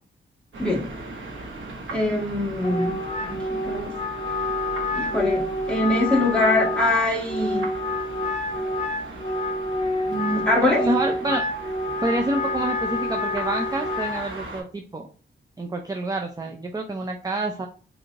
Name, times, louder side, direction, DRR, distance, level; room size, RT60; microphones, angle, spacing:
sound 1, 0.5-14.6, right 2 dB, 75° right, 1.1 m, -39 dB
voice 1, 1.9-3.9 4.9-7.7 10.1-10.9, left 2 dB, 5° left, -5 dB, 1.7 m, -23 dB
Wind instrument woodwind instrument, 2.6-14.3, left 2 dB, 35° left, 0.7 m, -28 dB
voice 2, 10.8-11.4 12.0-15.1 15.6-17.7, right 2 dB, 20° right, 3 dB, 0.5 m, -27 dB
4.5 x 2.7 x 2.5 m, 0.39 s
wide cardioid pair, 85°, 20 cm